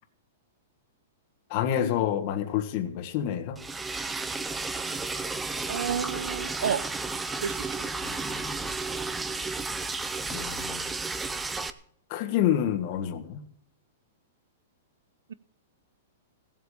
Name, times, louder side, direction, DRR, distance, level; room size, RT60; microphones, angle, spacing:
voice 1, 1.5-3.6 8.0-8.6 10.3-10.9 12.1-13.4, left 10 dB, 30° left, 7 dB, 1.6 m, -28 dB
Liquid, 3.6-11.7, right 3 dB, 5° right, 0.5 m, -33 dB
voice 2, 5.7-6.8 7.4-7.9, right 8 dB, 90° right, 18 dB, 0.8 m, -30 dB
17.5 x 8.3 x 7.2 m, 0.64 s
supercardioid pair, 175°, 0 cm